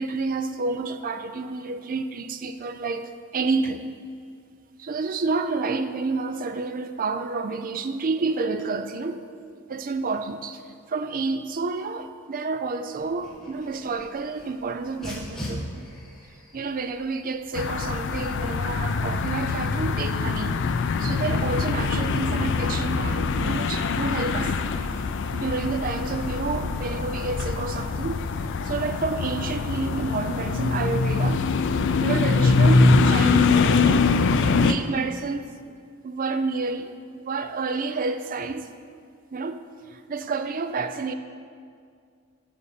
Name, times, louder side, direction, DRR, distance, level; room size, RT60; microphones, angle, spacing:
voice 1, 0.0-3.8 4.8-9.2 9.7-10.6 10.9-15.9 16.5-20.5 21.0-24.6 25.3-28.2 28.6-31.5 32.0-34.2 34.5-35.5 36.0-38.7 39.3-39.6 39.9-41.1, right 4 dB, 40° right, 0.4 m, -29 dB
Dog, 13.0-22.1, equal, ahead, 1.6 m, -43 dB
sound 1, 17.5-34.7, left 4 dB, 55° left, 0.4 m, -23 dB
7.4 x 5.4 x 6.6 m
head